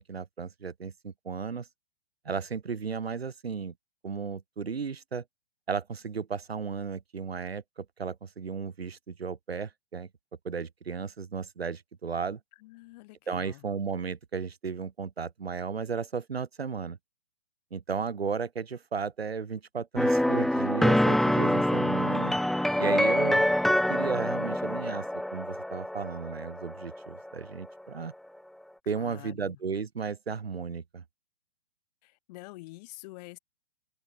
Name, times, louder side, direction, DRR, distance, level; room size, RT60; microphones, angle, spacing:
voice 1, 0.0-1.7 2.3-3.7 4.0-5.2 5.7-10.1 10.4-12.4 13.3-17.0 17.7-22.3 22.8-23.5 23.9-25.1 25.3-28.1 28.9-31.0, right 5 dB, 90° right, 2.1 m, -34 dB
voice 2, 12.6-13.6 28.9-29.6 32.0-33.4, left 21 dB, 45° left, 5.9 m, -47 dB
sound 1, 20.0-27.5, left 1 dB, ahead, 0.6 m, -26 dB
open air
hypercardioid pair, 130°, 30 cm